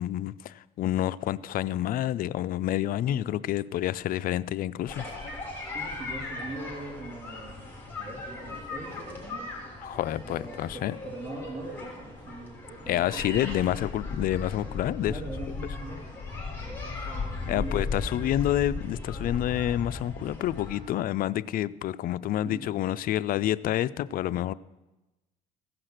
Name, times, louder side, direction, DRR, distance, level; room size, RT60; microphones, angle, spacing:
voice 1, 0.0-5.1 9.8-11.0 12.9-15.1 17.5-24.5, left 12 dB, 55° left, 0.4 m, -28 dB
sound 1, 4.9-20.8, left 3 dB, 10° left, 3.4 m, -37 dB
voice 2, 5.7-7.6 8.0-9.5 10.2-13.8 15.1-16.3 16.6-18.4 22.2-22.6, right 2 dB, 45° right, 2.9 m, -42 dB
15.5 x 5.9 x 6.5 m
cardioid pair, 110°, 17 cm